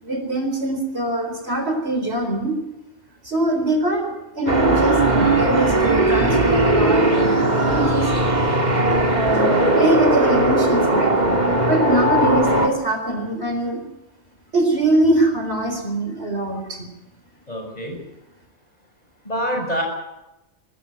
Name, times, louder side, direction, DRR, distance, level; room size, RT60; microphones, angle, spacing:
voice 1, 0.0-2.6 3.2-8.3 9.1-13.8 14.5-16.9, right 2 dB, 55° right, 4 dB, 4.5 m, -23 dB
sound 1, 4.5-12.7, right 2 dB, 35° right, 2.4 m, -18 dB
voice 2, 17.5-18.0 19.2-19.8, equal, 30° left, 1 dB, 6.4 m, -25 dB
24.0 x 13.0 x 9.6 m, 0.96 s
omnidirectional pair, 1.3 m